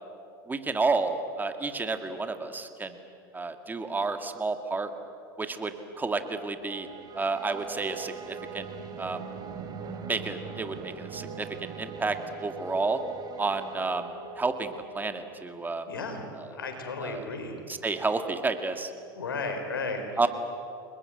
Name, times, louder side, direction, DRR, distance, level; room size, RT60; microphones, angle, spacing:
voice 1, 0.5-2.9 3.3-4.9 5.4-6.9 7.1-8.7 9.0-9.2 10.1-13.0 13.4-14.1 14.4-15.9 16.4-16.5 17.0-17.3 17.7-18.9 20.2-20.3, right 3 dB, 15° right, 7 dB, 2.0 m, -30 dB
sound 1, 6.6-15.0, right 6 dB, 35° right, 3.1 m, -41 dB
voice 2, 15.9-16.2 16.5-17.6 19.2-20.0, left 3 dB, 85° left, 5 dB, 4.4 m, -34 dB
30.0 x 20.5 x 7.9 m, 2.6 s
hypercardioid pair, 85°, 11 cm